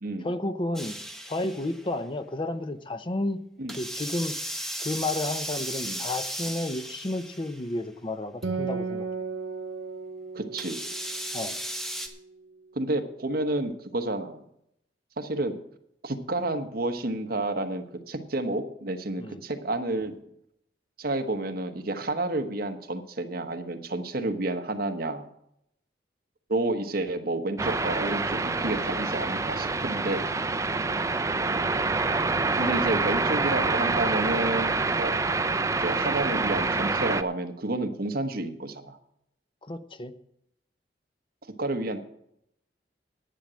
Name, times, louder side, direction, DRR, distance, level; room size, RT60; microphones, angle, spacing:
voice 1, 0.2-0.9 1.3-3.4 3.8-4.3 4.8-9.1 11.3-11.5 19.2-19.4 39.6-40.1, left 2 dB, 30° left, 11 dB, 0.7 m, -31 dB
sound 1, 0.8-1.9 3.7-7.7 8.4-8.5 10.6-12.1, equal, 5° left, 1.2 m, -35 dB
Acoustic guitar, 8.4-12.2, right 4 dB, 75° right, 1.7 m, -35 dB
voice 2, 10.3-10.8 12.7-14.4 15.2-15.6 16.0-20.1 21.0-25.3 26.5-30.2 32.6-35.1 35.8-39.0 41.6-42.0, right 2 dB, 60° right, 6 dB, 1.2 m, -30 dB
sound 2, 27.6-37.2, right 3 dB, 20° right, 0.5 m, -26 dB
10.5 x 9.0 x 6.3 m, 0.75 s
head